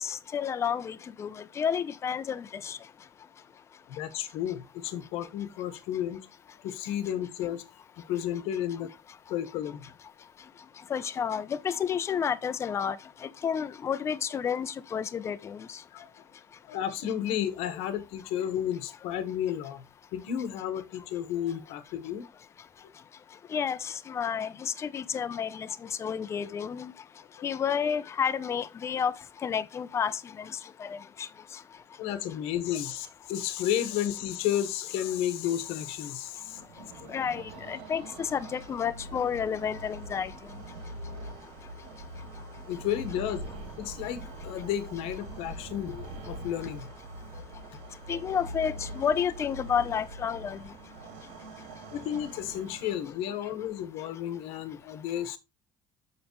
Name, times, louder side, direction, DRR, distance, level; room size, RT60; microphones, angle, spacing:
voice 1, 0.0-2.8 10.9-13.0 13.2-15.8 23.5-25.7 26.0-26.9 27.4-29.1 29.4-31.3 37.1-40.3 48.1-50.6, left 7 dB, 30° left, 0.6 m, -31 dB
voice 2, 3.9-6.2 6.6-7.6 8.0-8.9 9.3-9.9 15.9-16.1 16.7-19.8 20.1-22.2 32.0-37.1 42.7-43.4 43.8-46.9 47.3-47.4 48.1-48.2 51.9-55.4, left 10 dB, 85° left, 1.3 m, -32 dB
sound 1, 36.4-53.4, right 1 dB, 80° right, 2.5 m, -43 dB
7.1 x 6.4 x 3.1 m
cardioid pair, 155°, 10 cm